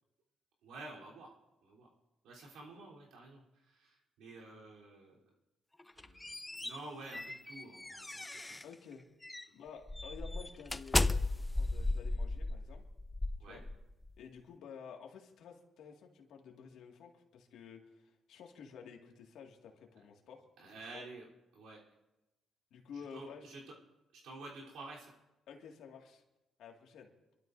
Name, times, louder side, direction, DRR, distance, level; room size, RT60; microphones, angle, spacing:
voice 1, 0.6-1.3 1.6-1.9 2.2-5.2 5.9-8.6 13.4-13.6 20.6-21.3 21.5-21.8 23.1-23.6 24.1-25.1, right 2 dB, 85° right, -4 dB, 3.5 m, -50 dB
sound 1, 5.8-8.7 9.2-9.5 9.9-14.1, left 2 dB, 15° left, 0.4 m, -35 dB
voice 2, 8.6-9.0 9.5-12.8 13.5-13.6 14.2-21.0 22.7-23.5 25.5-26.2 26.6-27.1, left 6 dB, 80° left, 1 dB, 2.0 m, -52 dB
29.5 x 12.5 x 2.6 m, 0.97 s
cardioid pair, 90°, 0 cm